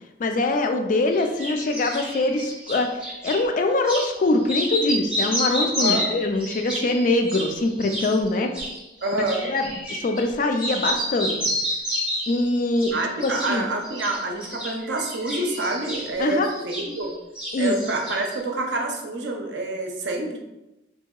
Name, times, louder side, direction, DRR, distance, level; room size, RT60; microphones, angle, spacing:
voice 1, 0.2-8.5 9.4-11.4 12.3-12.9 13.2-13.6 16.2-16.5 17.5-17.8, left 2 dB, 45° left, 5 dB, 0.3 m, -23 dB
sound 1, 1.1-3.4 3.8-4.1 4.4-10.3 10.6-12.4 12.7-13.6 13.8-17.1 17.3-18.4, equal, 5° right, 0.5 m, -30 dB
voice 2, 9.0-9.4 12.9-17.1 17.6-20.4, right 2 dB, 75° right, 2 dB, 0.5 m, -27 dB
3.6 x 2.7 x 2.3 m, 0.98 s
head